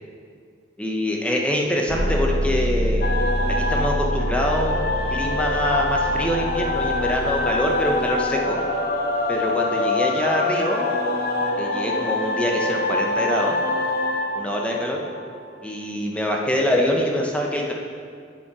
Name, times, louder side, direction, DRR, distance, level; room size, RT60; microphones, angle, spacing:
voice 1, 0.8-3.0 3.5-4.8 5.1-8.6 9.3-10.8 11.6-13.6 14.3-15.0 15.6-17.7, equal, 5° left, 0 dB, 0.7 m, -24 dB
sound 1, 1.9-8.8, equal, 85° right, 1.0 m, -27 dB
sound 2, 3.0-15.6, left 2 dB, 55° left, 0.6 m, -25 dB
7.0 x 5.9 x 4.7 m, 2.1 s
head